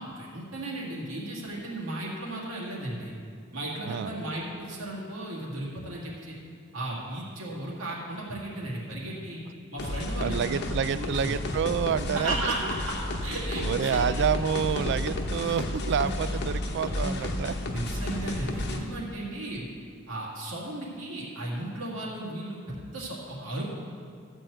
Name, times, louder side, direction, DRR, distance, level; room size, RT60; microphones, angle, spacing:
voice 1, 0.0-3.1 3.5-6.4 6.7-9.4 9.7-10.5 10.8-11.4 12.1-13.0 13.2-14.1 17.6-19.7 20.1-23.6, right 1 dB, 85° right, -5 dB, 2.0 m, -35 dB
voice 2, 3.8-4.2 10.2-12.5 13.6-17.6, right 7 dB, 60° right, 15 dB, 0.3 m, -28 dB
sound 1, 9.8-18.8, left 1 dB, 55° left, 0.9 m, -32 dB
12.5 x 4.5 x 7.7 m, 2.3 s
head